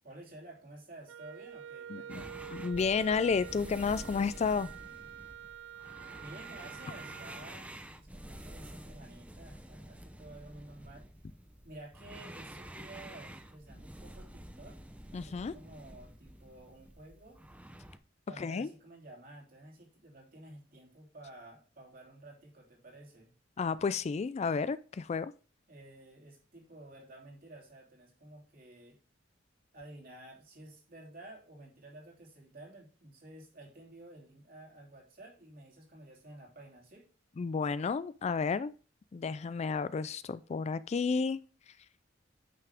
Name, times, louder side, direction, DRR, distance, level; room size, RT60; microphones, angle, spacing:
voice 1, 0.0-2.4 6.2-11.1 11.6-14.8 15.1-17.4 18.3-23.3 25.7-29.0 29.7-37.1, right 1 dB, 50° right, 2.9 m, -52 dB
Wind instrument woodwind instrument, 1.1-7.5, right 9 dB, 85° right, 0.3 m, -47 dB
voice 2, 1.9-2.2 2.5-4.7 15.1-15.5 18.4-18.7 23.6-25.3 37.4-38.7 39.1-41.4, left 5 dB, 35° left, 0.3 m, -31 dB
sound 1, 2.1-18.0, right 1 dB, 5° right, 0.7 m, -49 dB
9.4 x 5.8 x 3.5 m
head